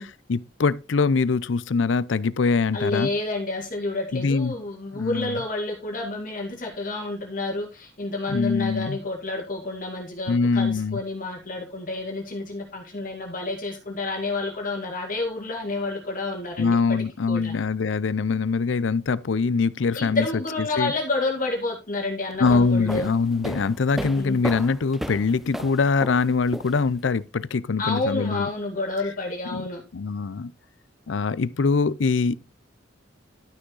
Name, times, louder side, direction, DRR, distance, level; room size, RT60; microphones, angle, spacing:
voice 1, 0.0-3.1 4.1-4.5 4.9-5.4 8.3-9.0 10.3-11.0 16.6-20.2 20.8-20.9 22.4-28.5 29.5-29.6 29.9-30.5 31.1-32.4, left 4 dB, 80° left, 0.5 m, -23 dB
voice 2, 2.7-17.5 19.9-23.1 23.9-24.4 27.8-29.8, left 2 dB, 45° left, 2.2 m, -29 dB
sound 1, 22.3-27.1, equal, ahead, 0.4 m, -35 dB
12.0 x 6.3 x 3.9 m
head